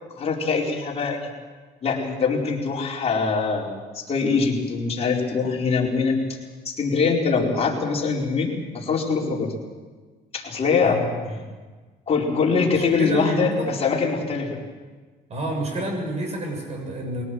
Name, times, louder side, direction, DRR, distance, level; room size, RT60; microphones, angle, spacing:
voice 1, 0.2-1.3 1.8-3.7 3.9-6.2 6.6-9.5 10.3-11.1 12.1-14.6, left 5 dB, 40° left, -2 dB, 4.5 m, -23 dB
voice 2, 10.8-11.4 12.7-13.7 15.3-17.3, right 1 dB, 40° right, 3 dB, 7.4 m, -29 dB
22.5 x 18.0 x 7.9 m, 1.4 s
cardioid pair, 110°, 17 cm